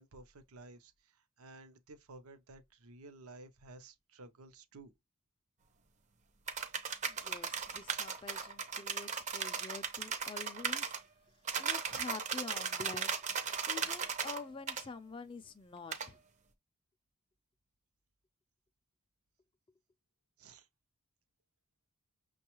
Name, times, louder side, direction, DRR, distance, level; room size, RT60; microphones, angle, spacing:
voice 1, 0.0-4.9 20.4-20.7, right 2 dB, 75° right, 0.7 m, -54 dB
sound 1, 6.5-11.0 11.5-14.4 14.7-14.8 15.9-16.1, right 6 dB, 30° right, 0.5 m, -37 dB
voice 2, 7.1-10.9 11.6-13.2 13.7-16.2, left 4 dB, 20° left, 0.3 m, -47 dB
6.0 x 2.3 x 2.9 m
head